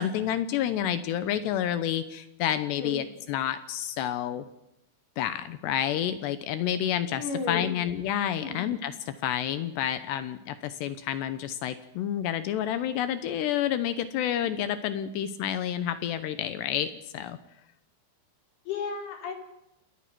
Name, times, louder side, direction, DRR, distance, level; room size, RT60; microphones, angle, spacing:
voice 1, 0.0-4.4 5.2-8.9 9.2-17.4, left 10 dB, 80° left, 11 dB, 2.5 m, -29 dB
voice 2, 2.7-3.1 7.1-7.7 8.4-8.6 18.7-19.3, left 4 dB, 50° left, 2 dB, 5.7 m, -33 dB
28.0 x 19.5 x 6.1 m, 0.84 s
omnidirectional pair, 6.0 m